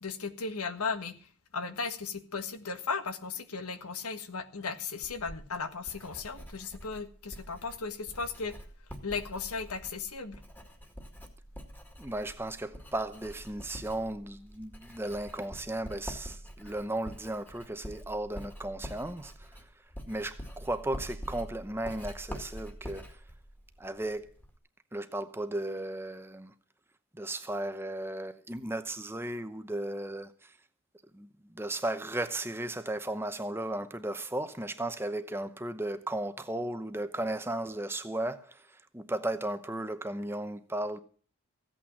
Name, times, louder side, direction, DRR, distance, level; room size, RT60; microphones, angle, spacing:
voice 1, 0.0-1.2 1.5-8.5 9.0-10.4, left 5 dB, 85° left, 1.5 m, -36 dB
Writing, 5.0-24.6, equal, 10° left, 2.0 m, -46 dB
voice 2, 12.0-19.7 20.1-23.2 23.8-24.3 24.9-26.5 27.1-30.6 31.1-41.0, right 1 dB, 10° right, 0.8 m, -35 dB
15.5 x 8.8 x 7.2 m
head